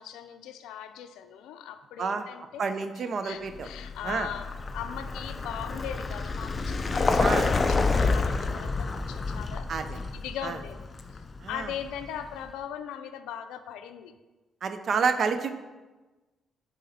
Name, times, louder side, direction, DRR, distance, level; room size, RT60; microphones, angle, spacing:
voice 1, 0.0-2.7 3.0-10.9 11.1-14.1, left 9 dB, 90° left, 10 dB, 0.4 m, -40 dB
voice 2, 2.6-3.7 4.0-4.3 7.2-7.5 9.7-10.0 10.4-10.5 11.4-11.7 14.6-15.5, right 5 dB, 55° right, 9 dB, 0.6 m, -29 dB
Vehicle, 3.5-12.3, left 3 dB, 30° left, 0.5 m, -29 dB
9.1 x 4.0 x 4.2 m, 1.2 s
cardioid pair, 90°, 0 cm